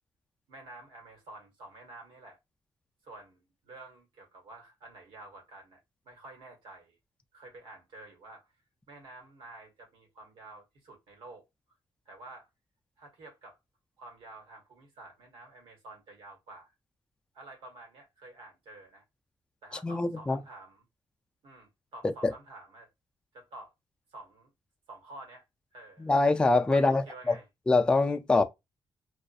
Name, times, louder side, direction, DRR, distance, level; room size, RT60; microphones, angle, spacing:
voice 1, 0.5-2.4 3.0-5.8 6.0-6.9 7.3-8.5 8.9-11.4 12.0-12.5 13.0-13.6 14.0-16.7 17.3-19.0 19.6-20.8 21.4-22.9 23.3-23.7 24.1-24.5 24.9-25.4 25.7-26.1 26.7-27.5, right 2 dB, 85° right, 1.2 m, -49 dB
voice 2, 19.8-20.4 22.2-22.3 26.0-27.3 27.7-28.4, left 3 dB, 10° left, 0.3 m, -24 dB
2.5 x 2.4 x 2.3 m
cardioid pair, 100°, 9 cm